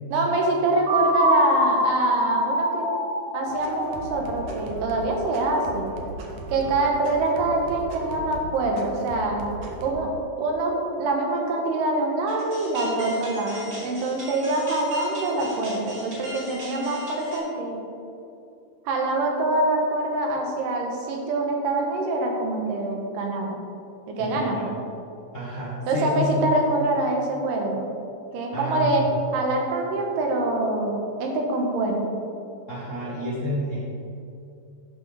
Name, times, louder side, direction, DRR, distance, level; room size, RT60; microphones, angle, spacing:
voice 1, 0.1-2.9 3.3-5.9 6.5-9.4 9.8-10.1 10.4-17.8 18.9-23.6 24.1-24.8 25.9-27.8 28.3-29.1 29.3-32.1, right 2 dB, 85° right, 1 dB, 2.6 m, -25 dB
sound 1, 0.9-4.7, equal, 40° right, 1.7 m, -25 dB
sound 2, 3.5-9.9, right 2 dB, 70° right, 2.0 m, -37 dB
sound 3, 12.3-17.4, equal, 20° right, 1.6 m, -39 dB
voice 2, 24.2-24.6 25.3-26.4 28.5-29.0 32.7-33.8, equal, 45° left, -9 dB, 0.9 m, -29 dB
10.5 x 5.5 x 3.4 m, 2.6 s
omnidirectional pair, 3.7 m